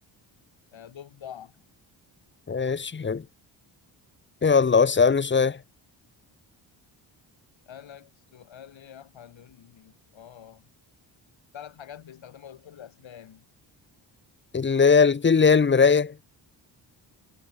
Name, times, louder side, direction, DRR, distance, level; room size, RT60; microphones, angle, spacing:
voice 1, 0.7-1.6 7.7-10.7 11.5-13.5, left 9 dB, 65° left, 4.7 m, -46 dB
voice 2, 2.5-3.2 4.4-5.6 14.5-16.1, left 5 dB, 25° left, 0.8 m, -20 dB
supercardioid pair, 55°, 49 cm